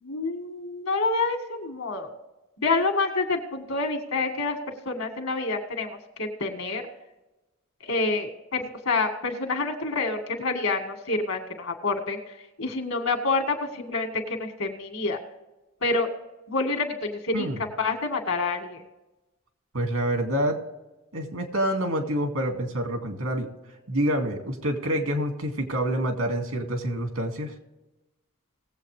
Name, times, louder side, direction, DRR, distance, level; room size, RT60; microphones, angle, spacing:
voice 1, 0.0-2.1 2.6-4.6 4.9-6.9 7.8-15.2 15.8-16.1 16.5-18.8, left 3 dB, 75° left, 4 dB, 2.0 m, -28 dB
voice 2, 19.7-20.6 21.1-23.5 23.9-27.5, right 1 dB, 85° right, 4 dB, 2.2 m, -27 dB
20.0 x 7.9 x 3.3 m, 1.0 s
head